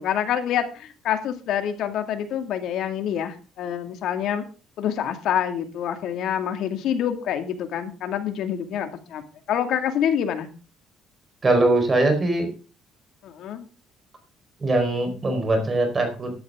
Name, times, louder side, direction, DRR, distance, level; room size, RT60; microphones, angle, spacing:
voice 1, 0.0-4.4 4.8-9.2 9.5-10.5 13.2-13.6, left 9 dB, 65° left, 7 dB, 2.3 m, -26 dB
voice 2, 11.4-12.5 14.6-16.3, right 2 dB, 25° right, 5 dB, 4.6 m, -21 dB
13.5 x 12.0 x 3.8 m, 0.35 s
cardioid pair, 105°, 0 cm